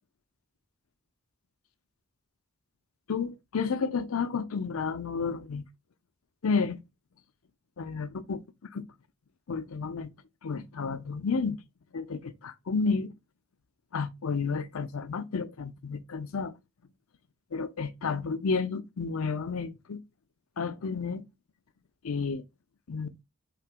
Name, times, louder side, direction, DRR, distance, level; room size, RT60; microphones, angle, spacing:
voice 1, 3.1-5.6 6.4-6.8 7.8-8.4 8.7-8.8 9.5-10.1 10.4-11.6 11.9-13.1 13.9-16.6 17.5-20.0 20.6-21.2 22.0-22.4 22.9-23.1, left 5 dB, 75° left, 0.6 m, -31 dB
3.8 x 2.9 x 4.8 m
head